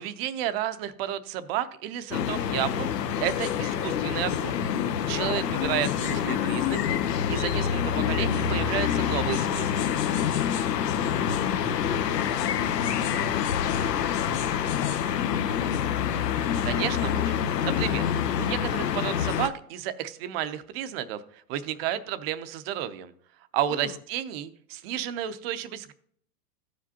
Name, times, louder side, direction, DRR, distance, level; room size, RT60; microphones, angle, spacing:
voice 1, 0.0-2.9 3.2-4.6 5.1-7.0 7.3-9.7 16.6-17.3 17.6-18.0 18.4-21.2 21.5-23.1 23.5-25.9, right 11 dB, 40° right, 11 dB, 0.6 m, -31 dB
sound 1, 2.1-19.5, left 8 dB, 90° left, 0.8 m, -26 dB
sound 2, 5.0-10.2, left 6 dB, 70° left, 1.1 m, -44 dB
voice 2, 10.7-15.9 23.7-24.0, left 10 dB, 45° left, 7 dB, 0.5 m, -42 dB
14.5 x 5.1 x 2.7 m, 0.64 s
hypercardioid pair, 130°, 47 cm